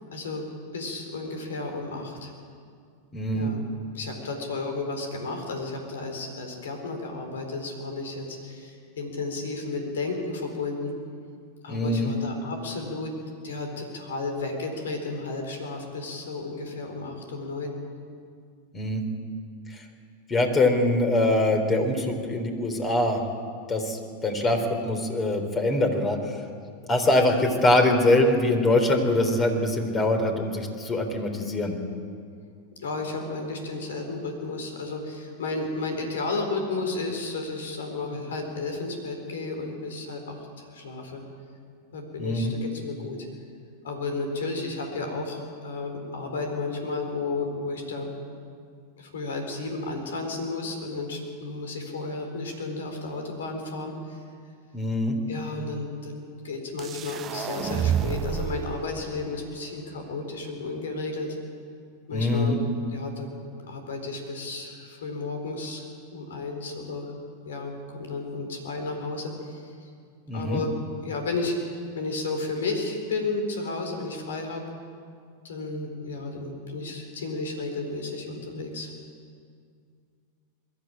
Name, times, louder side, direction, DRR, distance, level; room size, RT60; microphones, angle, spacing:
voice 1, 0.1-0.4 0.7-2.3 3.3-3.6 3.9-10.9 11.6-13.1 13.4-17.7 32.8-41.2 41.9-43.2 43.8-48.1 49.0-54.2 55.3-61.4 62.1-62.6 62.9-63.3 63.6-65.8 66.1-67.1 67.4-69.9 70.3-70.7 71.0-74.6 75.4-78.9, left 3 dB, 80° left, 4 dB, 4.0 m, -33 dB
voice 2, 3.1-3.5 11.7-12.1 18.7-19.0 19.7-19.8 20.3-23.2 23.7-26.4 26.9-31.8 42.2-42.5 54.7-55.2 62.1-62.6 70.3-70.6, left 1 dB, 25° left, 5 dB, 3.6 m, -23 dB
sound 1, 56.8-58.7, right 8 dB, 30° right, 0.9 m, -28 dB
22.0 x 13.5 x 9.0 m, 2.2 s
hypercardioid pair, 100°, 0 cm